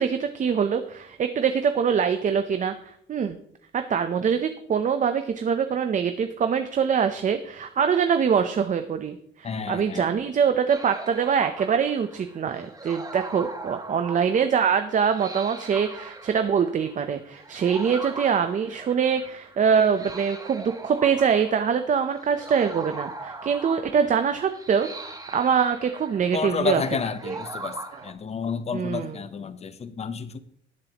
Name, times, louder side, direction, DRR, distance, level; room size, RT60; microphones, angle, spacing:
voice 1, 0.0-3.4 3.7-26.8 27.3-27.4 28.7-29.2, right 7 dB, 40° right, 0.8 m, -24 dB
voice 2, 9.4-10.1 26.3-27.8 28.0-30.4, left 6 dB, 35° left, 0.9 m, -30 dB
sound 1, 10.7-28.1, right 3 dB, 20° right, 1.3 m, -40 dB
18.5 x 7.5 x 3.0 m
cardioid pair, 130°, 19 cm